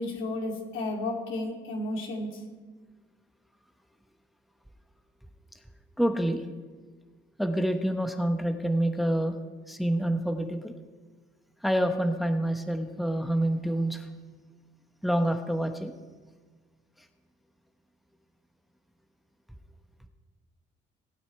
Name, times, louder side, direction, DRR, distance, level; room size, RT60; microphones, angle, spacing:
voice 1, 0.0-2.4, left 2 dB, 80° left, 0 dB, 2.6 m, -32 dB
voice 2, 6.0-6.4 7.4-9.4 9.7-10.7 11.6-14.1 15.0-15.9, right 1 dB, ahead, 5 dB, 1.0 m, -27 dB
19.5 x 9.2 x 3.3 m, 1.4 s
cardioid pair, 90°, 20 cm